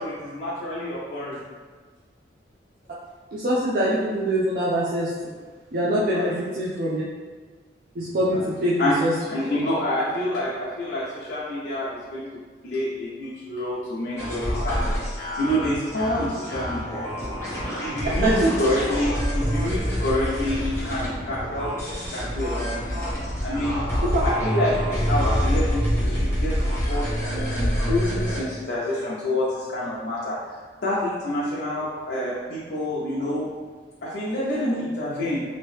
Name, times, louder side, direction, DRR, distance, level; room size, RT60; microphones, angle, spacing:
voice 1, 0.0-1.4 6.1-6.3 8.3-8.5 8.8-9.0 9.3-12.3 12.6-15.0 15.4-17.0 17.6-22.9 23.4-23.9 24.2-30.4 30.8-33.5 34.0-35.4, left 1 dB, 70° left, -7 dB, 0.6 m, -27 dB
voice 2, 3.3-5.1 5.7-7.0 8.0-9.1 18.2-18.5 24.0-24.2, right 1 dB, 55° right, -7 dB, 0.5 m, -23 dB
sound 1, 14.2-28.4, equal, 15° left, 0.9 m, -26 dB
2.9 x 2.7 x 3.2 m, 1.5 s
head